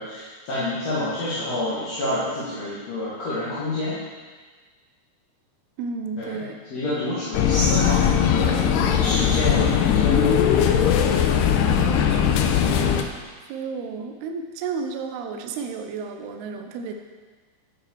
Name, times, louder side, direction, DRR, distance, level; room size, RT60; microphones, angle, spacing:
voice 1, 0.0-4.0 6.2-6.4 6.7-8.6 9.0-10.3, left 1 dB, 50° left, -10 dB, 2.4 m, -28 dB
voice 2, 5.8-6.6 11.8-12.9 13.5-16.9, right 5 dB, 80° right, 4 dB, 2.4 m, -32 dB
sound 1, 7.3-13.0, left 8 dB, 80° left, 2.5 m, -19 dB
12.0 x 8.1 x 4.7 m, 1.4 s
omnidirectional pair, 5.5 m